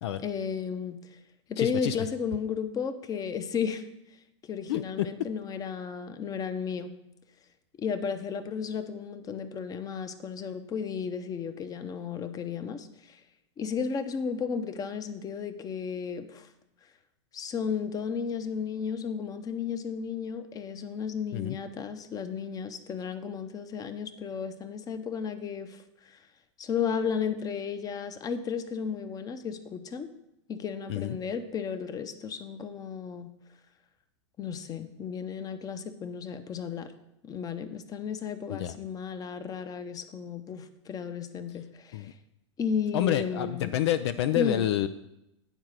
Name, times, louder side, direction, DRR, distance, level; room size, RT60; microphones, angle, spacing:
voice 1, 0.2-1.0 1.5-3.8 4.4-6.9 7.8-13.2 13.6-16.5 17.3-26.2 26.6-30.1 30.5-33.3 34.4-36.9 37.2-42.1 42.6-43.8 44.3-44.7, left 6 dB, 25° left, 10 dB, 0.8 m, -34 dB
voice 2, 1.6-2.0 4.7-4.8 21.3-21.6 30.9-31.2 38.5-38.8 41.9-42.1 42.9-44.9, left 12 dB, 60° left, 11 dB, 0.5 m, -28 dB
9.2 x 4.7 x 6.5 m, 0.87 s
hypercardioid pair, 105°, 15 cm